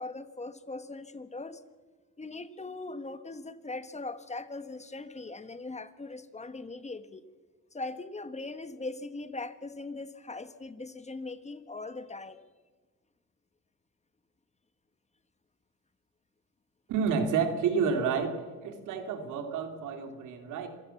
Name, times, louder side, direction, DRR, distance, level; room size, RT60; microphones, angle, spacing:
voice 1, 0.0-1.6 2.2-7.2 7.7-12.4, left 3 dB, 20° left, 11 dB, 1.4 m, -40 dB
voice 2, 16.9-20.7, right 6 dB, 85° right, 6 dB, 3.2 m, -30 dB
26.5 x 16.5 x 7.3 m, 1.4 s
cardioid pair, 90°, 30 cm